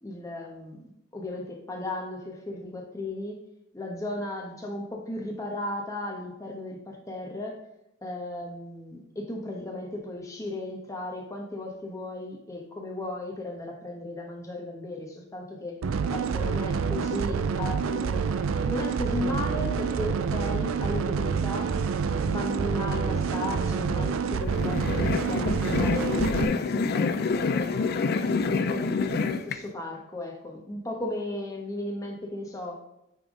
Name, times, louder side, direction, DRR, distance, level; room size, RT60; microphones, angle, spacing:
voice 1, 0.0-3.4 3.7-7.6 8.0-15.8 16.1-18.3 18.6-21.7 22.3-28.2 28.6-32.8, left 2 dB, 15° left, 0 dB, 1.0 m, -35 dB
sound 1, 15.8-26.4, right 6 dB, 85° right, 0.4 m, -27 dB
sound 2, 24.4-29.6, left 4 dB, 50° left, 0.4 m, -27 dB
9.0 x 3.5 x 3.6 m, 0.85 s
head